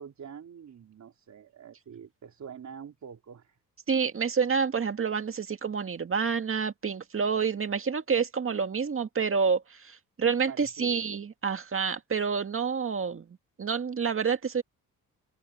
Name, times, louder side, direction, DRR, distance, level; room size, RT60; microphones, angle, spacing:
voice 1, 0.0-3.6 10.5-11.1, right 7 dB, 55° right, 3.7 m, -45 dB
voice 2, 3.9-13.3 13.6-14.6, right 6 dB, 40° right, 1.9 m, -28 dB
open air
cardioid pair, 90°, 34 cm